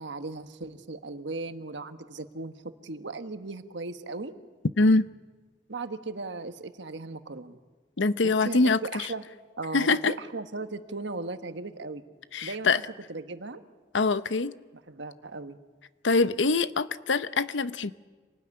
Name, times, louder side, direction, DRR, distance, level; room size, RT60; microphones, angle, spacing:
voice 1, 0.0-2.6 2.8-4.3 5.7-7.6 8.2-9.3 9.6-12.0 12.4-12.8 13.1-13.6 14.9-15.6, right 3 dB, 75° right, 1.4 m, -37 dB
voice 2, 4.8-5.1 8.0-9.1 9.7-10.1 12.3-12.8 13.9-14.5 16.0-17.9, left 3 dB, 80° left, 0.8 m, -24 dB
26.5 x 19.0 x 9.7 m
head